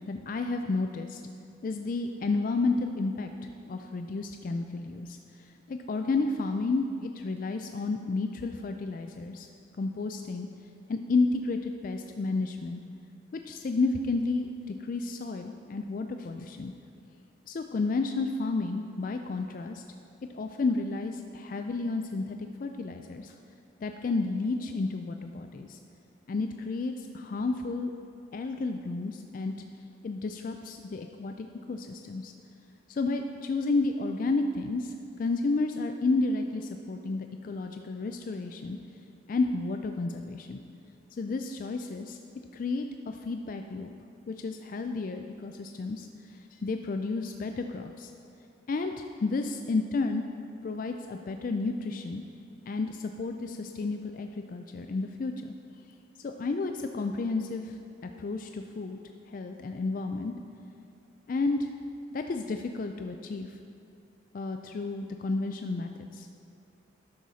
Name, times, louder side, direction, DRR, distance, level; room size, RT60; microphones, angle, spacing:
voice 1, 0.1-1.2 1.6-9.5 9.8-10.5 10.9-12.8 13.5-16.7 17.5-19.8 20.3-23.3 23.8-25.8 26.3-27.9 28.3-29.5 30.0-32.3 32.9-38.8 39.3-40.6 41.1-42.2 42.5-43.9 44.3-46.1 46.5-48.1 48.7-50.2 50.6-52.2 52.7-55.5 56.2-59.0 59.3-60.3 61.3-61.7 62.1-63.5 64.3-66.3, left 3 dB, 45° left, 5 dB, 0.3 m, -31 dB
12.0 x 6.3 x 4.1 m, 2.5 s
head